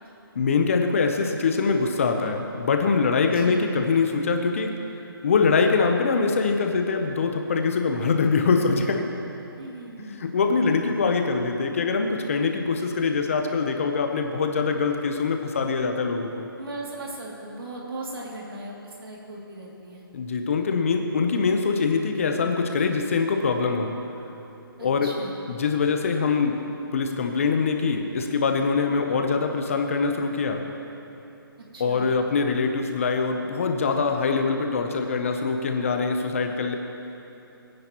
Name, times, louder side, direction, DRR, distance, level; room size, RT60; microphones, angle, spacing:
voice 1, 0.3-4.7 5.2-9.1 10.1-16.5 20.1-23.9 24.8-25.1 25.5-26.6 26.9-30.6 31.8-36.8, left 4 dB, 35° left, 4 dB, 0.8 m, -23 dB
voice 2, 3.3-3.6 9.6-10.1 16.6-20.1 24.8-25.4 28.9-29.2 31.7-32.1, right 2 dB, 70° right, -3 dB, 2.7 m, -38 dB
21.5 x 9.7 x 3.0 m, 3.0 s
hypercardioid pair, 170°, 13 cm